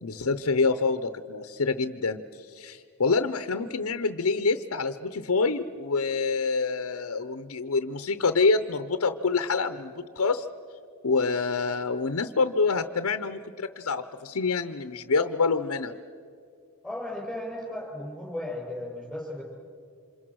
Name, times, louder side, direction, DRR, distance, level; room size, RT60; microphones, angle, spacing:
voice 1, 0.0-10.5 11.0-16.0, left 4 dB, 75° left, 10 dB, 0.8 m, -26 dB
voice 2, 16.8-19.4, left 1 dB, ahead, -1 dB, 7.0 m, -35 dB
28.5 x 26.5 x 6.4 m, 2.4 s
head